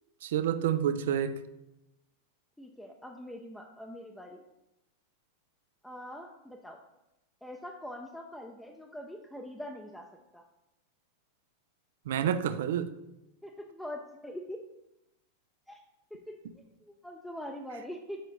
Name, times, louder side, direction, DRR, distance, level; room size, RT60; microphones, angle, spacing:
voice 1, 0.2-1.4 12.1-12.9, right 9 dB, 70° right, 0.4 m, -29 dB
voice 2, 2.6-4.4 5.8-6.8 7.4-10.1 10.3-10.4 13.4-14.6 15.7-15.8 16.1-18.2, equal, 5° left, 0.6 m, -43 dB
6.5 x 4.4 x 4.1 m
hypercardioid pair, 100°, 0 cm